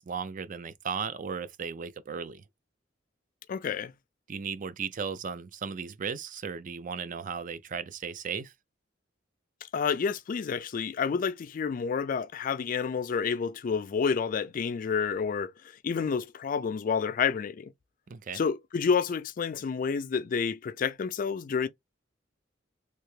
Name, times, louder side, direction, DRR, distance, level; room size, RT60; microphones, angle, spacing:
voice 1, 0.0-2.4 4.3-8.5 18.1-18.4, right 6 dB, 45° right, 0.4 m, -36 dB
voice 2, 3.5-3.9 9.7-15.5 15.8-17.7 18.3-21.7, left 6 dB, 50° left, 0.3 m, -29 dB
3.3 x 2.8 x 3.2 m
head